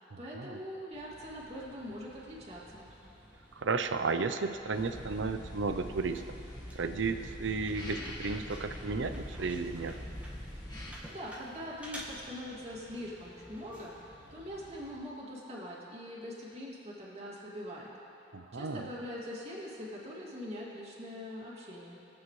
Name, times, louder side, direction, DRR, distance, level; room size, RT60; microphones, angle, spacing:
voice 1, 0.0-2.9 11.1-17.9 18.5-22.0, equal, 35° right, -6 dB, 2.5 m, -43 dB
sound 1, 0.9-14.9, equal, 5° right, 1.7 m, -52 dB
voice 2, 3.6-6.2 6.7-9.9 18.3-18.9, right 4 dB, 75° right, 9 dB, 0.6 m, -33 dB
sound 2, 4.7-10.9, left 1 dB, 20° left, 1.7 m, -43 dB
23.5 x 8.7 x 3.2 m, 2.9 s
head